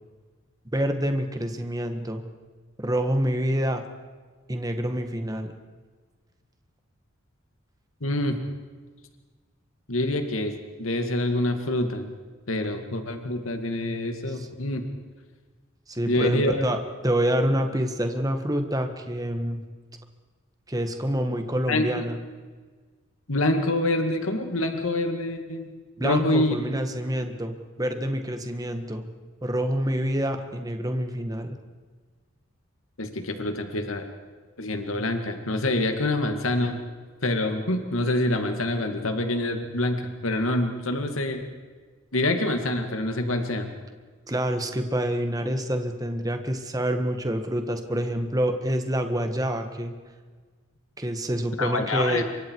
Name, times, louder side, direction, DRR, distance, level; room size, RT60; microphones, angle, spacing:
voice 1, 0.7-2.2 2.8-3.8 4.5-5.5 14.3-14.5 15.9-19.6 20.7-22.2 26.0-29.0 29.4-31.6 44.3-49.9 51.0-52.2, right 1 dB, 20° right, 6 dB, 1.7 m, -27 dB
voice 2, 8.0-8.4 9.9-10.5 10.8-12.1 12.5-14.8 16.1-16.7 21.7-22.0 23.3-25.7 26.0-26.6 33.0-34.0 34.6-36.8 37.2-41.4 42.1-43.7 51.6-52.2, left 1 dB, 90° left, 5 dB, 2.2 m, -26 dB
27.0 x 24.0 x 4.8 m, 1.4 s
head